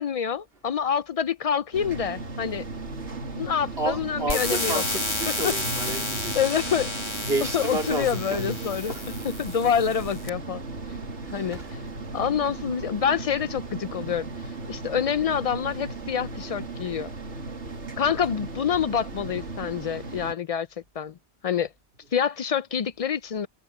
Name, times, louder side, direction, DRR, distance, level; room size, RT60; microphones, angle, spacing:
voice 1, 0.0-2.7 3.3-4.8 5.4-5.5 6.3-7.2 7.5-8.9 9.4-10.7 11.3-11.6 12.1-17.1 18.0-20.7 21.0-21.1 21.4-21.7 22.1-23.5, left 8 dB, 65° left, 0.3 m, -27 dB
sound 1, 1.7-20.3, right 3 dB, 80° right, 2.4 m, -36 dB
voice 2, 3.8-6.4 6.7-6.8 7.1-9.3 10.9-11.7 16.8-16.9, right 2 dB, 60° right, 3.1 m, -32 dB
sound 2, 4.3-10.3, left 2 dB, 25° left, 2.1 m, -31 dB
omnidirectional pair, 1.2 m